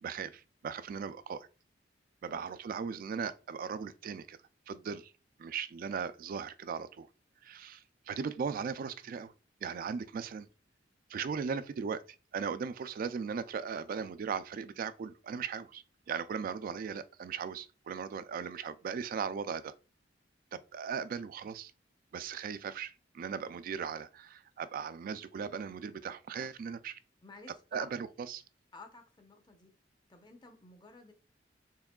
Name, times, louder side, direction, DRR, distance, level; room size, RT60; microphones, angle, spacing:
voice 1, 0.0-1.5 2.2-4.4 4.7-5.1 5.4-7.1 7.4-9.3 9.6-10.5 11.1-19.7 20.5-21.7 22.1-27.0 27.7-28.4, right 6 dB, 50° right, 0.3 m, -38 dB
voice 2, 27.2-27.9 28.7-29.7 30.1-31.1, left 3 dB, 25° left, 0.7 m, -53 dB
4.7 x 3.6 x 2.2 m
head